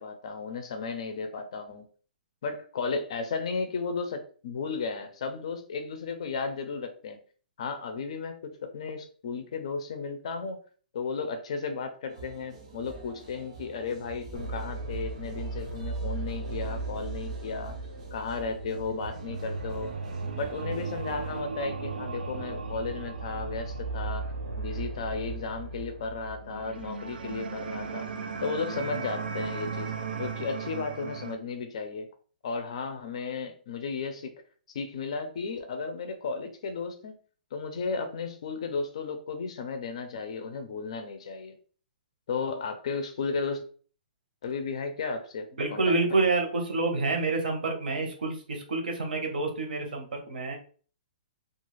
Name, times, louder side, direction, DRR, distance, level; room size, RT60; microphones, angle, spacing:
voice 1, 0.0-1.9 2.4-7.2 7.6-10.6 10.9-17.8 18.1-19.9 20.4-24.2 24.6-28.1 28.4-29.9 30.2-32.1 32.4-34.3 34.7-37.1 37.5-41.5 42.3-43.6 44.4-46.2, left 4 dB, 40° left, 7 dB, 0.4 m, -34 dB
sound 1, 12.1-21.4, right 3 dB, 35° right, 0.5 m, -48 dB
sound 2, 14.3-31.3, right 4 dB, 90° right, 0.5 m, -36 dB
voice 2, 45.6-50.6, right 3 dB, 75° right, 3 dB, 0.9 m, -28 dB
2.3 x 2.3 x 3.0 m, 0.42 s
hypercardioid pair, 180°, 5 cm